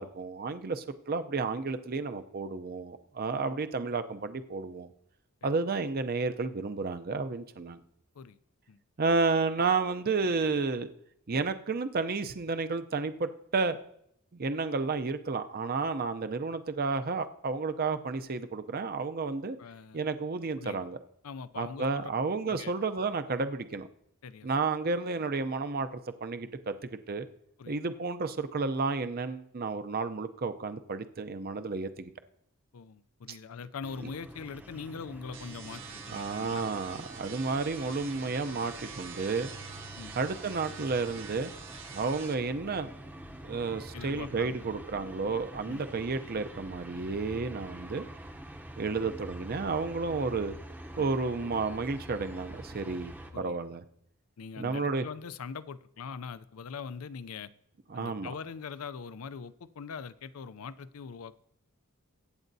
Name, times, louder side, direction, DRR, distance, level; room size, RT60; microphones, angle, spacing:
voice 1, 0.0-4.9 5.4-7.8 9.0-10.9 11.3-13.8 14.3-19.6 19.9-21.0 21.6-23.9 24.4-25.9 26.2-26.7 27.1-27.3 27.7-32.1 33.3-33.4 36.1-39.5 40.1-41.5 41.9-42.9 43.4-48.1 48.8-50.5 51.0-53.8 54.6-55.0 57.9-58.3, right 4 dB, 45° right, 10 dB, 0.6 m, -31 dB
voice 2, 19.6-20.1 20.6-20.9 21.2-22.1 22.4-22.7 24.2-24.5 27.6-27.8 32.7-36.7 40.0-40.1 43.9-44.7 45.6-45.8 50.9-51.1 53.3-53.6 54.4-57.5 57.9-61.3, left 6 dB, 85° left, 15 dB, 0.5 m, -42 dB
sound 1, 33.8-53.3, right 1 dB, 10° right, 0.7 m, -46 dB
sound 2, 35.3-42.3, right 6 dB, 60° right, 1.5 m, -46 dB
22.0 x 9.0 x 2.7 m, 0.75 s
head